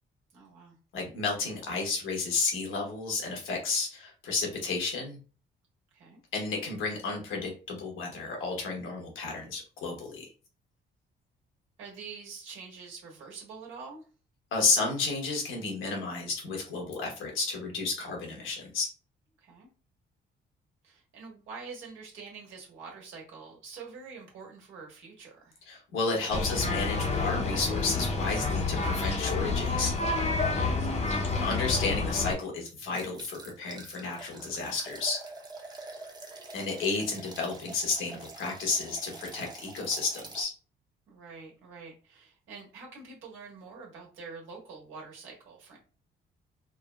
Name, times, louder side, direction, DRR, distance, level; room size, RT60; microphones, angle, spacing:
voice 1, 0.3-0.7 5.9-6.2 11.8-14.0 19.4-19.7 20.8-25.6 30.5-31.2 41.1-45.8, right 4 dB, 80° right, -2 dB, 1.4 m, -46 dB
voice 2, 0.9-5.2 6.3-10.3 14.5-18.9 25.7-29.9 31.4-35.2 36.5-40.5, left 4 dB, 80° left, 0 dB, 1.1 m, -32 dB
sound 1, 26.3-32.3, left 3 dB, 35° left, 0.7 m, -29 dB
sound 2, 32.9-40.4, right 3 dB, 20° right, 0.7 m, -46 dB
3.6 x 2.0 x 2.3 m, 0.36 s
cardioid pair, 90°, 20 cm